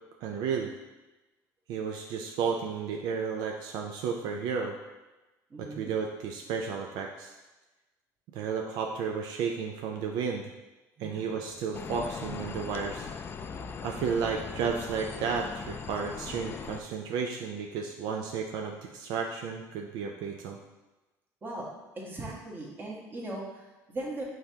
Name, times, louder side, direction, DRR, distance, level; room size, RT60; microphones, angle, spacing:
voice 1, 0.2-0.7 1.7-4.8 5.6-7.3 8.3-10.5 11.0-13.1 13.8-20.6, right 6 dB, 75° right, 2 dB, 0.4 m, -33 dB
voice 2, 5.5-5.9 11.0-11.4 21.4-21.7 21.9-24.2, right 2 dB, 25° right, -3 dB, 1.2 m, -39 dB
sound 1, 11.7-16.8, left 5 dB, 30° left, 0.3 m, -39 dB
5.5 x 3.4 x 2.8 m, 1.1 s
cardioid pair, 110°, 7 cm